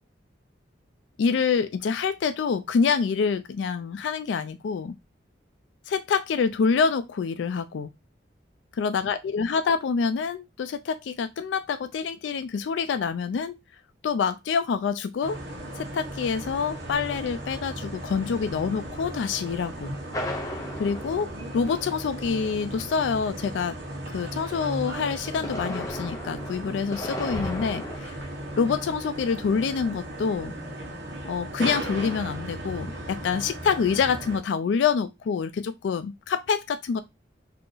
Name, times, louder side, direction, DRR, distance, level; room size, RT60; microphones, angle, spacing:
voice 1, 1.2-4.9 5.9-7.9 8.8-13.6 14.0-15.4 15.8-19.9 20.8-23.8 24.1-28.2 28.6-30.5 31.2-37.0, left 5 dB, 85° left, 0.3 m, -26 dB
sound 1, 15.2-34.4, right 1 dB, 70° right, 1.0 m, -36 dB
sound 2, 20.1-22.2 25.1-28.0, left 1 dB, 20° left, 0.6 m, -35 dB
2.8 x 2.4 x 3.8 m
head